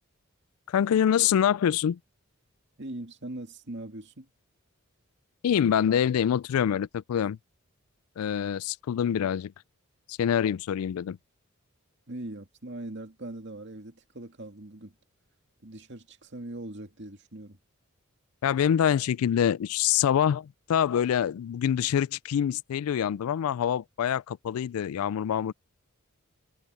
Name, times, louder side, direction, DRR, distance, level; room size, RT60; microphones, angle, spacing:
voice 1, 0.7-2.0 5.4-7.4 8.2-9.5 10.1-11.2 18.4-25.5, left 9 dB, 80° left, 0.3 m, -25 dB
voice 2, 2.8-4.3 12.1-14.9 15.6-17.6, right 1 dB, 55° right, 2.4 m, -41 dB
head